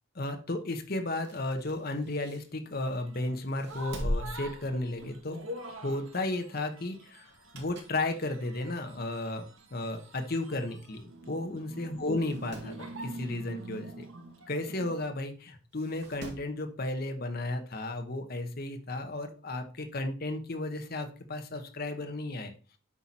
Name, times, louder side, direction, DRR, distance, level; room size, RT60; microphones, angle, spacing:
voice 1, 0.1-5.5 5.8-9.4 9.7-14.1 14.5-22.5, left 2 dB, 45° left, 6 dB, 1.0 m, -34 dB
sound 1, 1.2-3.0 3.5-5.4 5.7-5.9 7.2-8.1 8.5-8.6 9.5-9.6 9.8-9.9 10.1-10.2 11.1-11.3 11.6-11.7 12.1-12.8 14.6-14.7 15.7-16.6 17.9-18.0, equal, 55° right, 2.5 m, -40 dB
sound 2, 2.9-15.0, right 2 dB, 80° right, 1.5 m, -46 dB
8.5 x 5.8 x 4.2 m, 0.38 s
head